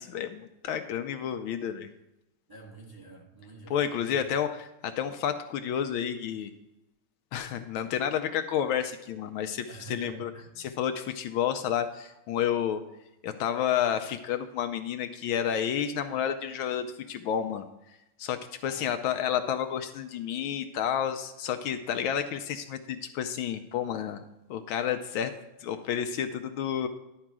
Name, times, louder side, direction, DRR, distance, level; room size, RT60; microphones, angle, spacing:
voice 1, 0.0-1.9 3.7-6.5 7.3-10.3 10.6-12.8 13.2-17.6 18.2-24.2 24.5-25.3 25.6-26.9, left 9 dB, 75° left, 8 dB, 1.3 m, -30 dB
voice 2, 2.5-4.3 9.7-10.5 18.6-18.9, right 1 dB, 15° right, -1 dB, 1.1 m, -47 dB
11.0 x 4.5 x 6.1 m, 0.92 s
omnidirectional pair, 2.4 m